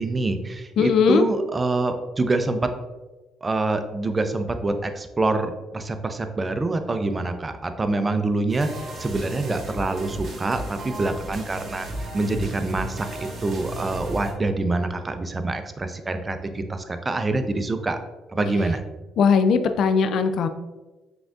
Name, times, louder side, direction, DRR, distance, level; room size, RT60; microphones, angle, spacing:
voice 1, 0.0-2.7 3.4-11.9 12.1-18.0 18.3-18.8, right 2 dB, 25° right, 8 dB, 0.4 m, -26 dB
voice 2, 0.8-1.3 19.2-20.5, left 5 dB, 65° left, 9 dB, 0.3 m, -19 dB
sound 1, 8.5-14.3, right 1 dB, 50° right, 1.2 m, -34 dB
4.9 x 3.6 x 2.4 m, 1.1 s
supercardioid pair, 75°, 0 cm